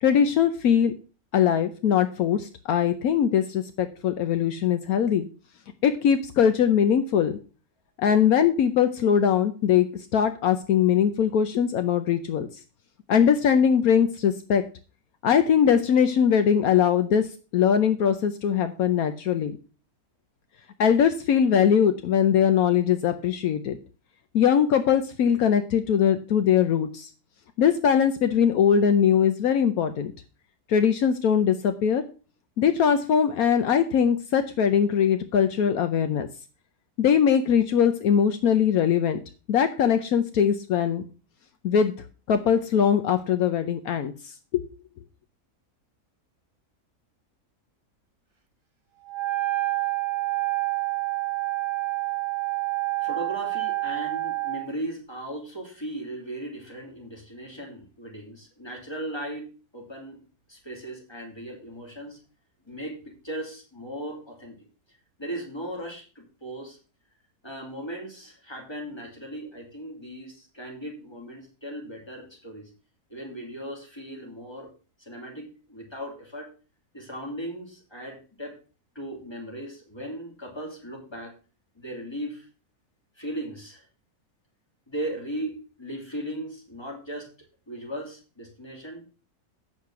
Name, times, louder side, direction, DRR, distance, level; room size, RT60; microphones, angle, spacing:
voice 1, 0.0-0.9 1.3-5.3 5.8-7.4 8.0-9.9 10.1-12.5 13.1-14.6 15.2-17.3 17.5-19.6 20.8-23.8 24.3-27.1 27.6-30.1 30.7-32.0 32.6-36.3 37.0-39.2 39.5-41.0 41.6-41.9 42.3-44.7, left 8 dB, 75° left, 9 dB, 1.2 m, -21 dB
Wind instrument woodwind instrument, 49.1-54.7, right 19 dB, 25° right, 0.9 m, -28 dB
voice 2, 53.0-59.5 59.7-60.2 60.5-62.2 62.6-64.6 64.9-66.8 67.4-72.7 73.1-74.7 75.0-76.5 76.9-78.6 78.9-81.3 81.7-82.5 83.2-83.9 84.9-87.3 87.7-89.0, right 1 dB, 15° left, -1 dB, 3.1 m, -37 dB
8.4 x 6.5 x 5.7 m, 0.36 s
omnidirectional pair, 1.6 m